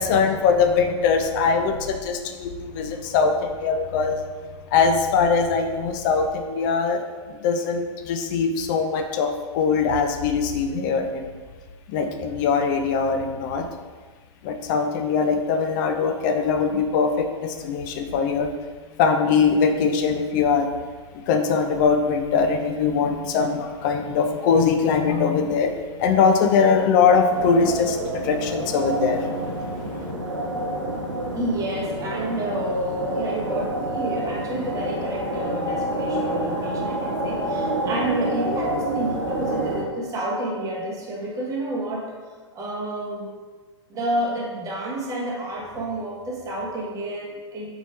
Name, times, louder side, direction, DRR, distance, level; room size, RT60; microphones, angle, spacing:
voice 1, 0.0-4.3 4.7-7.0 7.3-11.3 11.9-13.7 14.4-18.5 19.0-20.7 21.3-25.7 26.0-28.0 28.2-29.2, left 5 dB, 40° left, 6 dB, 0.5 m, -21 dB
sound 1, 27.3-39.8, right 1 dB, 85° right, 1.1 m, -28 dB
voice 2, 31.3-42.2 42.5-43.3 43.9-47.7, right 1 dB, 20° right, -2 dB, 0.9 m, -29 dB
4.5 x 3.0 x 3.2 m, 1.4 s
hypercardioid pair, 115°, 16 cm